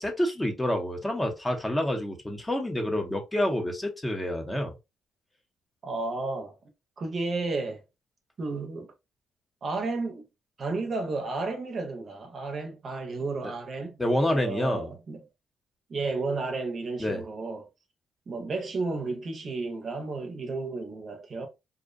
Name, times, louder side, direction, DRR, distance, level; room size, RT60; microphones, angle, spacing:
voice 1, 0.0-4.7 13.4-13.5 14.0-14.9 17.0-17.2, left 1 dB, 15° left, 0.6 m, -28 dB
voice 2, 5.8-6.5 7.0-7.8 8.4-8.9 9.6-10.3 10.6-15.2 15.9-17.7 18.3-21.5, right 3 dB, 50° right, 0.6 m, -32 dB
2.5 x 2.1 x 2.4 m
cardioid pair, 90°, 0 cm